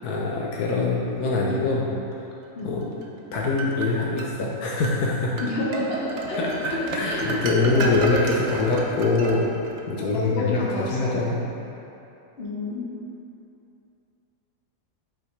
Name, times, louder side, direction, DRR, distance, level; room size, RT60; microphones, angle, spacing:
voice 1, 0.0-1.9 2.6-2.8 3.3-5.4 6.4-9.5 9.9-11.4, left 3 dB, 80° left, -3 dB, 1.3 m, -24 dB
voice 2, 2.5-2.9 5.4-8.0 10.1-11.1 12.4-12.9, left 1 dB, 40° left, -6 dB, 1.4 m, -29 dB
sound 1, 3.0-4.3 4.8-5.0 5.4-9.8, right 3 dB, 55° right, 0.9 m, -32 dB
8.9 x 5.8 x 3.2 m, 2.8 s
omnidirectional pair, 1.7 m